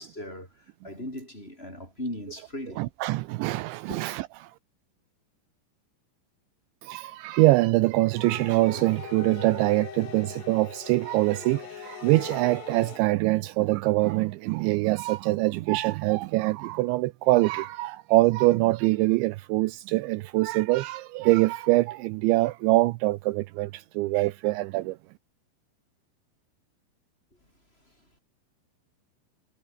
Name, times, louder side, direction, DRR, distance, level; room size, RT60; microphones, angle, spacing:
voice 1, 0.0-2.8 3.9-4.0 27.8-28.2, left 1 dB, 10° left, 6.8 m, -39 dB
voice 2, 2.8-4.5 6.8-25.0, right 20 dB, 85° right, 2.8 m, -24 dB
sound 1, 8.1-13.0, left 8 dB, 60° left, 5.0 m, -41 dB
omnidirectional pair, 5.6 m